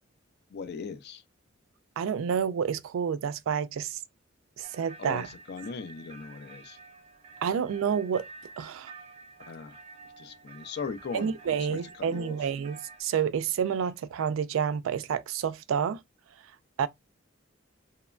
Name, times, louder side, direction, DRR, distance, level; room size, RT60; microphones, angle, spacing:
voice 1, 0.5-1.2 5.0-6.8 9.5-9.8 10.0-12.5, left 5 dB, 55° left, 0.4 m, -39 dB
voice 2, 2.0-4.0 4.6-5.3 7.4-8.3 8.6-8.9 11.1-16.0 16.8-16.9, right 7 dB, 85° right, 0.3 m, -29 dB
sound 1, 4.6-13.0, right 4 dB, 30° right, 0.5 m, -50 dB
2.9 x 2.1 x 2.3 m
head